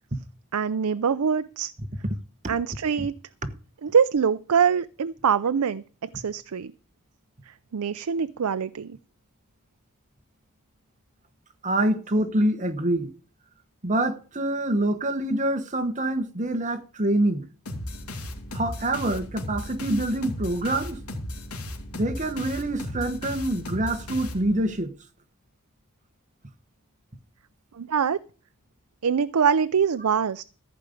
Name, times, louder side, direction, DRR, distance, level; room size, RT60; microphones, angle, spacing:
voice 1, 0.5-1.7 2.5-3.1 3.8-6.7 7.5-9.0 27.7-28.2 29.0-30.4, right 6 dB, 90° right, 0.5 m, -24 dB
voice 2, 11.6-13.1 13.8-17.4 18.5-21.0 21.9-24.9, right 1 dB, 35° right, 1.2 m, -26 dB
sound 1, 17.7-24.8, left 1 dB, 90° left, 2.6 m, -36 dB
14.5 x 5.2 x 8.4 m
head